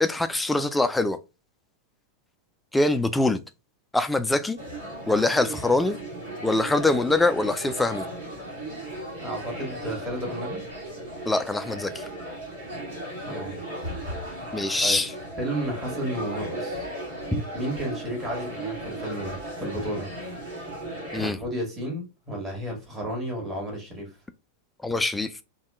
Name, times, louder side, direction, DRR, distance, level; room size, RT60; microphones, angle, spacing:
voice 1, 0.0-1.2 2.7-3.4 3.9-4.6 5.1-6.0 6.4-8.0 11.3-12.0 14.5-15.1 17.3-17.4 21.1-21.4 24.8-25.3, left 2 dB, 5° left, 0.4 m, -23 dB
sound 1, 4.6-21.3, right 1 dB, 65° right, 1.7 m, -36 dB
voice 2, 9.2-10.6 13.2-13.6 14.8-15.0 15.4-16.9 17.5-20.1 21.2-24.1, right 1 dB, 15° right, 1.5 m, -32 dB
3.5 x 2.2 x 3.5 m
figure-of-eight pair, 90°, 0 cm